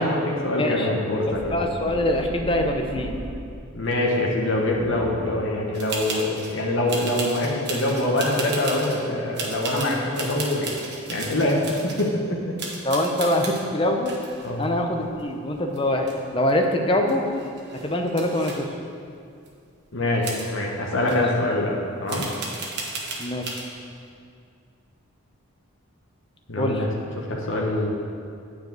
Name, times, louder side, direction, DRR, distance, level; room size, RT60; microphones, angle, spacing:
voice 1, 0.0-1.6 3.7-10.7 11.1-12.6 14.4-14.7 19.9-22.3 26.5-27.9, left 1 dB, 65° left, -2 dB, 1.3 m, -24 dB
voice 2, 0.6-0.9 1.5-3.2 12.8-14.2 14.6-17.3 17.8-18.7 21.0-21.2 23.2-23.6 26.6-26.8, left 1 dB, 25° left, 2 dB, 0.7 m, -24 dB
sound 1, 1.3-3.7 4.7-5.7, right 1 dB, 70° right, 1.4 m, -36 dB
sound 2, 5.7-6.6 6.9-9.0 9.3-12.1 12.6-13.6 14.1-15.5 15.7-16.5 16.8-16.9 17.1-18.6 19.5-19.6 20.2-20.5 21.1-21.2 22.1-23.6, right 3 dB, 50° right, 1.4 m, -34 dB
9.2 x 4.9 x 7.8 m, 2.4 s
head